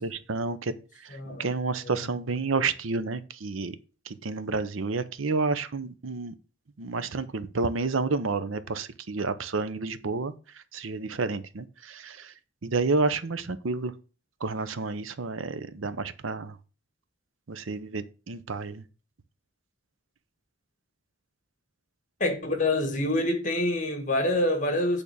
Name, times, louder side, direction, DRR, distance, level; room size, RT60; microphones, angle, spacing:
voice 1, 0.0-3.8 4.1-6.3 6.8-12.3 12.6-13.9 14.4-16.6 17.5-18.8, right 3 dB, 85° right, 0.7 m, -30 dB
voice 2, 1.1-1.5 1.8-2.0 22.2-25.0, left 1 dB, 40° left, 1.5 m, -26 dB
8.6 x 3.6 x 6.7 m
head